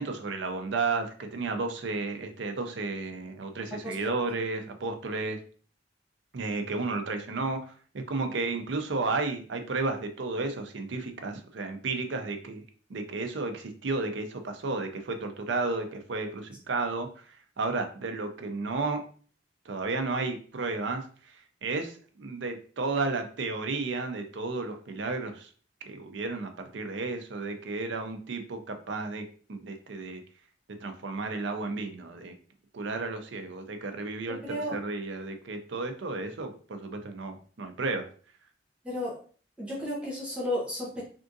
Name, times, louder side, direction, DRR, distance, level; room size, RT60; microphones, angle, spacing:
voice 1, 0.0-5.4 6.3-12.6 12.9-17.1 17.6-19.0 19.7-21.0 21.6-25.5 25.9-29.2 29.5-30.2 30.8-32.3 32.7-38.1, right 3 dB, 75° right, 6 dB, 0.5 m, -32 dB
voice 2, 3.8-4.2 34.4-34.8 38.8-39.2 39.6-41.0, left 1 dB, 5° right, -7 dB, 0.7 m, -33 dB
3.5 x 2.5 x 2.5 m, 0.42 s
head